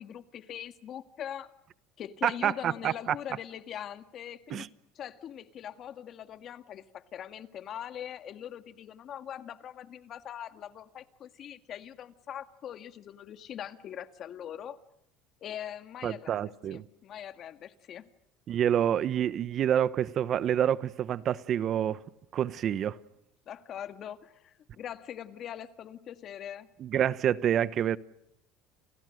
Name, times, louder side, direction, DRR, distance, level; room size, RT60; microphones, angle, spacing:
voice 1, 0.0-1.5 2.0-4.7 5.0-14.8 15.4-18.1 23.5-26.7, left 10 dB, 50° left, 1.9 m, -42 dB
voice 2, 2.2-2.9 4.5-4.7 16.0-16.8 18.5-22.0 22.3-23.0 26.8-28.0, right 10 dB, 45° right, 1.0 m, -27 dB
30.0 x 28.5 x 6.5 m
supercardioid pair, 105°, 0 cm